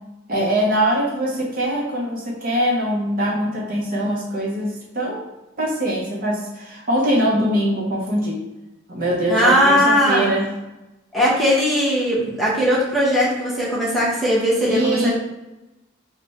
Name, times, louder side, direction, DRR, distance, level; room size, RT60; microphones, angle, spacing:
voice 1, 0.3-5.2 5.6-8.4 8.9-10.5 14.7-15.1, right 1 dB, 45° right, -4 dB, 0.7 m, -22 dB
voice 2, 9.3-10.3 11.1-15.1, equal, ahead, -8 dB, 0.9 m, -19 dB
3.3 x 2.1 x 4.0 m, 1.0 s
head